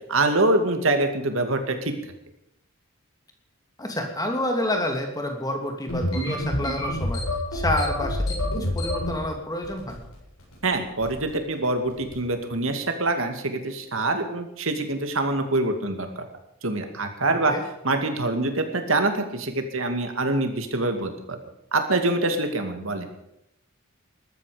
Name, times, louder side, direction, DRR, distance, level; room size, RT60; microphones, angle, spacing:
voice 1, 0.1-1.9 10.6-16.3 16.6-17.5 17.8-21.4 21.7-23.1, right 2 dB, 65° right, 6 dB, 2.4 m, -25 dB
voice 2, 3.8-7.2 7.5-10.0 17.5-17.6, left 1 dB, 15° left, 3 dB, 2.8 m, -28 dB
sound 1, 5.9-9.2 9.6-10.1 10.4-10.7 11.0-11.3 11.9-12.2, left 1 dB, 85° left, 7.3 m, -27 dB
20.0 x 13.5 x 5.2 m, 0.81 s
head